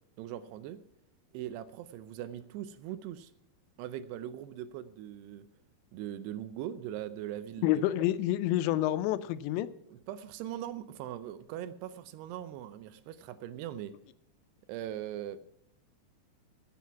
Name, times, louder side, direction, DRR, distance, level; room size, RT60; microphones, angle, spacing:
voice 1, 0.2-0.8 1.3-3.3 3.8-5.5 5.9-7.9 9.9-13.9 14.7-15.4, right 11 dB, 80° right, 13 dB, 2.6 m, -40 dB
voice 2, 7.6-9.7, left 13 dB, 85° left, 13 dB, 2.9 m, -28 dB
15.0 x 8.4 x 5.7 m, 0.77 s
omnidirectional pair, 5.0 m